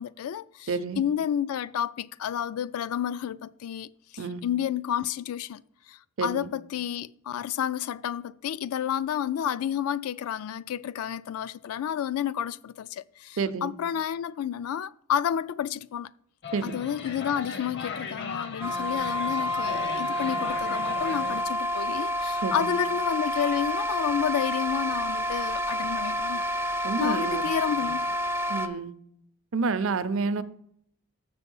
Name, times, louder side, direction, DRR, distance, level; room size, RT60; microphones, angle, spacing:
voice 1, 0.0-5.6 5.9-16.1 16.6-26.4 27.0-28.1, left 9 dB, 70° left, 0.3 m, -30 dB
voice 2, 0.7-1.0 4.2-4.4 6.2-6.5 13.4-13.7 16.5-16.8 22.4-22.7 26.8-27.5 27.8-27.9 28.5-28.9 29.5-30.4, right 4 dB, 60° right, 0.5 m, -29 dB
sound 1, 16.4-21.4, left 4 dB, 50° left, 0.7 m, -37 dB
sound 2, 18.6-28.7, left 1 dB, 10° right, 0.4 m, -29 dB
6.8 x 6.6 x 5.4 m
head